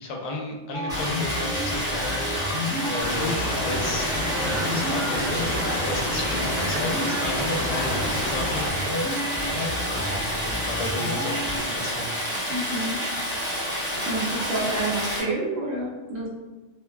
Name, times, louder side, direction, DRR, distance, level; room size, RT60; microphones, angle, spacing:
voice 1, 0.0-2.2 2.8-4.1 4.4-5.6 5.8-9.2 9.9-12.2, left 2 dB, 80° left, 1 dB, 1.0 m, -34 dB
sound 1, 0.7-11.6, left 1 dB, 65° right, 1.1 m, -31 dB
Stream, 0.9-15.2, equal, 5° right, 0.6 m, -29 dB
sound 2, 3.0-8.7, equal, 35° left, 0.7 m, -30 dB
voice 2, 12.5-13.0 14.0-16.3, right 2 dB, 85° right, -5 dB, 1.2 m, -28 dB
3.3 x 2.1 x 2.3 m, 1.2 s
omnidirectional pair, 1.3 m